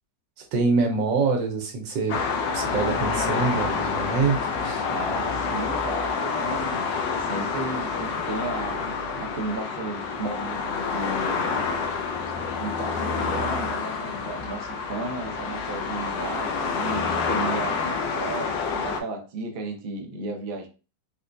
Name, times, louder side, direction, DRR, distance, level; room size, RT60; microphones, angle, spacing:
voice 1, 0.4-2.2 2.5-4.8, right 4 dB, 85° right, 3 dB, 1.4 m, -25 dB
sound 1, 2.1-19.0, left 5 dB, 90° left, 1.3 m, -28 dB
voice 2, 4.9-6.8 7.2-11.5 12.6-20.7, right 3 dB, 70° right, 2 dB, 0.5 m, -34 dB
4.2 x 2.2 x 2.5 m, 0.33 s
omnidirectional pair, 1.9 m